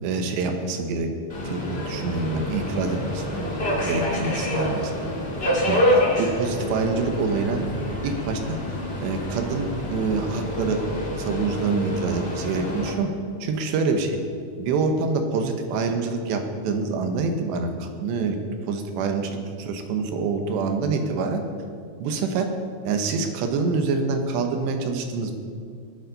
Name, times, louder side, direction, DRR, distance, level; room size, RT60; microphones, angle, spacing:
voice 1, 0.0-1.1 1.4-3.5 3.8-4.9 5.4-7.6 8.0-8.7 9.0-10.8 11.2-13.1 13.4-14.2 14.6-18.4 18.7-21.4 22.0-22.5 22.8-25.4, right 4 dB, 75° right, 5 dB, 3.2 m, -26 dB
Subway metro underground, 1.3-12.9, left 1 dB, 35° left, 0.9 m, -27 dB
22.5 x 9.3 x 4.0 m, 2.3 s
omnidirectional pair, 5.2 m